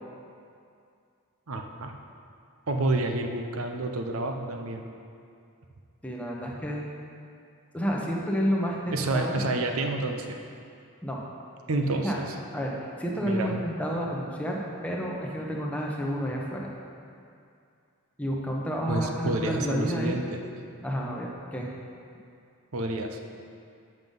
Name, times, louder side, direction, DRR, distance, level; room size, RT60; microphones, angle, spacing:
voice 1, 1.5-2.0 2.7-4.8 8.9-10.4 11.7-12.3 13.2-13.6 18.9-20.4 22.7-23.4, right 2 dB, 70° right, 4 dB, 0.7 m, -29 dB
voice 2, 6.0-6.9 7.7-9.4 11.0-11.2 12.0-12.2 12.5-12.7 13.0-16.7 18.2-20.2 20.8-21.7, equal, 5° left, -2 dB, 0.9 m, -30 dB
7.8 x 5.6 x 5.3 m, 2.4 s
head